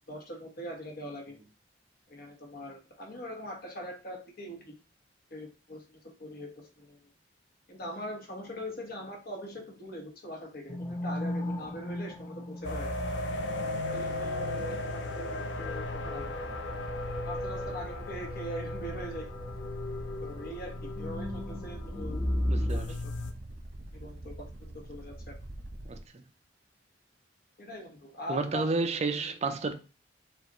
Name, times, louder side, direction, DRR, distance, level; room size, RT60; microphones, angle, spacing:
voice 1, 0.1-1.4 2.1-4.8 5.3-7.0 7.7-12.9 13.9-16.3 17.2-19.3 20.2-22.2 22.7-23.1 23.9-25.3 27.6-28.7, equal, 55° left, 1.1 m, -42 dB
sound 1, 10.7-22.8, left 1 dB, 15° left, 0.5 m, -36 dB
sound 2, 12.6-23.3, left 2 dB, 75° left, 0.5 m, -37 dB
sound 3, 15.5-26.1, right 1 dB, 80° right, 0.9 m, -45 dB
voice 2, 22.5-23.0 25.9-26.2 28.3-29.7, right 3 dB, 35° right, 0.5 m, -31 dB
5.1 x 2.4 x 2.9 m
head